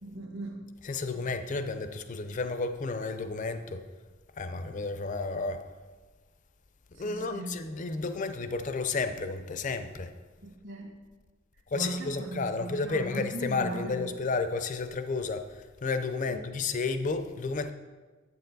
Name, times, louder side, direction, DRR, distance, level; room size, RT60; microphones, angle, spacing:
voice 1, 0.0-0.7 1.1-1.2 6.9-7.5 10.4-10.9 11.7-14.3 16.3-16.5, right 1 dB, 65° right, 1.5 m, -38 dB
voice 2, 0.8-3.8 4.4-5.7 7.0-10.1 11.7-17.7, left 4 dB, 35° left, 0.4 m, -32 dB
8.2 x 6.8 x 3.9 m
head